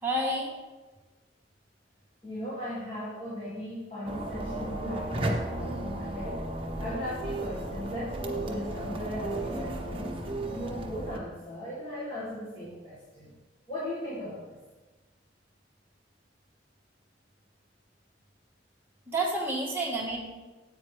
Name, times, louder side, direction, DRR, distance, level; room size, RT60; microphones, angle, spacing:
voice 1, 0.0-0.5 19.1-20.2, right 1 dB, 10° right, -3 dB, 1.6 m, -29 dB
voice 2, 2.2-13.4 13.7-14.6, equal, 30° left, -8 dB, 1.9 m, -38 dB
sound 1, 4.0-11.2, right 1 dB, 30° right, 1.0 m, -34 dB
9.2 x 8.3 x 3.4 m, 1.2 s
head